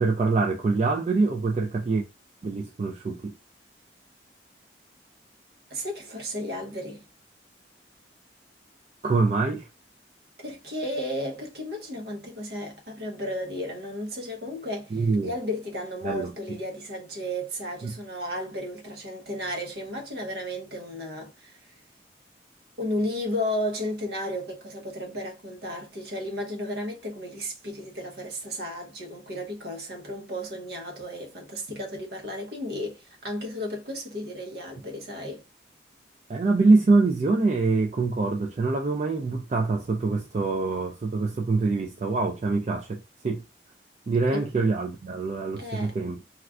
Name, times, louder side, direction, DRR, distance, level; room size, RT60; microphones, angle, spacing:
voice 1, 0.0-2.0 2.4-3.3 9.0-9.7 14.9-15.3 16.0-16.3 17.8-17.9 36.3-43.0 43.2-43.4 44.1-46.2, right 3 dB, 40° right, 0.3 m, -24 dB
voice 2, 5.7-7.0 10.4-21.6 22.8-35.4 44.3-44.5 45.6-45.9, left 1 dB, 60° right, 0.8 m, -33 dB
2.4 x 2.3 x 3.4 m
head